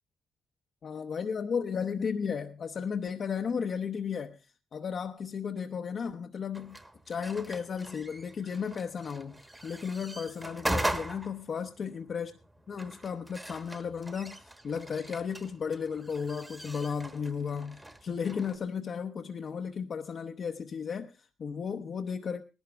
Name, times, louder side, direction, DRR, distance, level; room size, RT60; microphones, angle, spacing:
voice 1, 0.8-4.5 4.7-6.8 7.1-12.3 12.7-22.4, left 6 dB, 50° left, 0.8 m, -34 dB
sound 1, 6.5-18.6, right 1 dB, 15° right, 1.3 m, -40 dB
18.5 x 11.5 x 3.4 m
cardioid pair, 90°, 0 cm